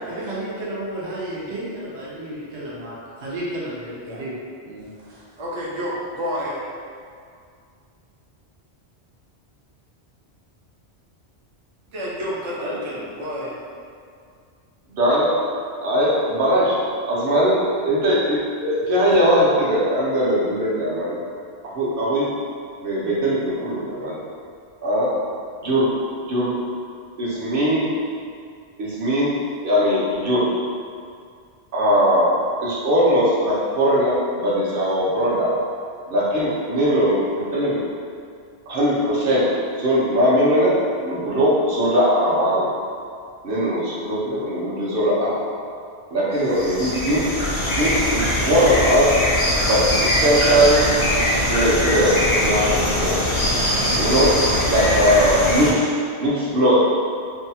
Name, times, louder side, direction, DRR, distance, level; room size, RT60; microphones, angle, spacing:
voice 1, 0.0-4.3 4.6-5.2, right 1 dB, 85° right, -7 dB, 1.0 m, -32 dB
voice 2, 5.4-6.6 11.9-13.5, equal, 45° right, -5 dB, 0.4 m, -30 dB
voice 3, 14.9-15.3 15.8-16.8 17.1-21.2 21.7-22.3 22.8-24.2 24.8-25.1 25.6-25.9 26.3-26.6 27.2-27.9 28.8-29.4 29.6-30.5 31.7-32.3 32.6-35.5 36.1-37.8 38.7-39.5 39.8-40.8 41.0-42.7 43.4-45.4 46.1-47.3 47.7-49.1 49.7-50.9 51.5-53.2 54.0-54.4 54.6-55.9 56.2-56.8, equal, 60° right, -7 dB, 0.9 m, -20 dB
sound 1, 46.4-55.7, left 1 dB, 50° left, 0.6 m, -21 dB
2.7 x 2.2 x 2.7 m, 2.2 s
omnidirectional pair, 1.1 m